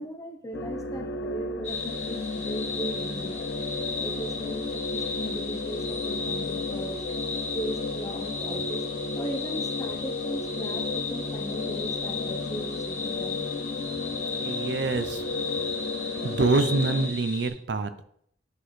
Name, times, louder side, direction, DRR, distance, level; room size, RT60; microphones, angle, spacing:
voice 1, 0.0-3.5 4.0-7.0 7.5-8.9 9.1-13.4, equal, 20° left, 5 dB, 0.7 m, -37 dB
sound 1, 0.5-17.1, left 3 dB, 85° left, 0.5 m, -33 dB
sound 2, 1.6-17.5, left 4 dB, 40° left, 1.8 m, -35 dB
voice 2, 14.4-15.2 16.2-18.0, right 3 dB, 75° right, 11 dB, 0.5 m, -26 dB
9.3 x 3.9 x 3.2 m, 0.67 s
head